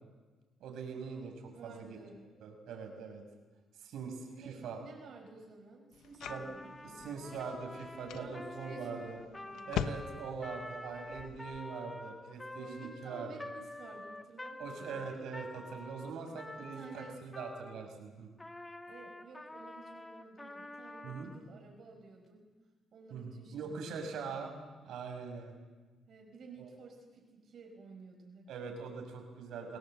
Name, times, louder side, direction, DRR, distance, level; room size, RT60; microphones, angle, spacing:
voice 1, 0.6-2.1 2.4-3.2 3.8-4.8 6.3-6.5 6.8-9.2 9.7-13.3 14.6-18.3 21.0-21.3 23.1-24.5 24.8-25.5 26.6-26.7 28.5-29.8, right 5 dB, 80° right, 4 dB, 6.0 m, -42 dB
voice 2, 1.5-2.3 4.3-7.2 8.1-10.1 12.6-15.0 16.7-17.2 18.9-22.5 22.9-24.4 26.1-28.5, right 4 dB, 60° right, 2 dB, 5.3 m, -53 dB
sound 1, 5.9-11.6, left 9 dB, 85° left, 0.9 m, -43 dB
Trumpet, 6.1-17.9 18.4-21.4, left 2 dB, 15° left, 1.7 m, -48 dB
28.5 x 19.0 x 7.9 m, 1.3 s
cardioid pair, 90°, 0 cm